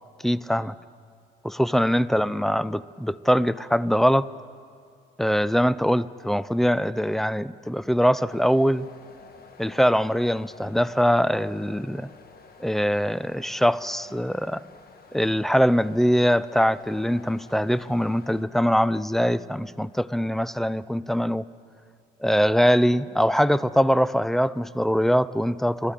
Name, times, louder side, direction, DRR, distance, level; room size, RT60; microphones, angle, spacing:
voice 1, 0.2-0.7 1.4-4.3 5.2-8.9 9.6-12.1 12.6-14.6 15.1-21.4 22.2-25.9, equal, ahead, 17 dB, 0.3 m, -22 dB
sound 1, 8.3-18.4, left 4 dB, 50° left, 1.3 m, -50 dB
27.0 x 13.0 x 3.8 m, 2.3 s
cardioid pair, 90°, 20 cm